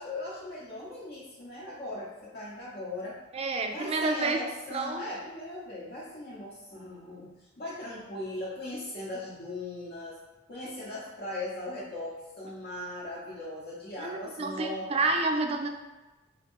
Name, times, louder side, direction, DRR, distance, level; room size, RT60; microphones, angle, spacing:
voice 1, 0.0-3.2 3.7-10.2 10.5-15.2, left 1 dB, 55° left, -7 dB, 0.8 m, -39 dB
voice 2, 3.3-4.4 4.7-5.1 14.0-15.7, right 3 dB, 30° right, 4 dB, 0.3 m, -29 dB
3.6 x 2.5 x 3.6 m, 1.1 s
head